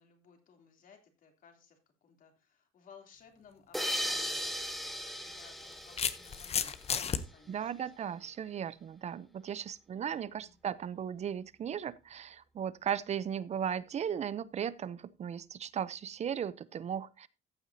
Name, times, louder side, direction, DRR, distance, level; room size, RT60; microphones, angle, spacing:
voice 1, 0.0-8.3 10.3-10.5, left 6 dB, 55° left, 3.2 m, -60 dB
sound 1, 3.7-7.1, equal, ahead, 1.3 m, -37 dB
sound 2, 4.0-4.2 5.3-7.2, left 7 dB, 40° left, 0.9 m, -33 dB
voice 2, 7.5-17.3, right 8 dB, 40° right, 0.7 m, -36 dB
14.5 x 8.1 x 2.8 m
cardioid pair, 110°, 17 cm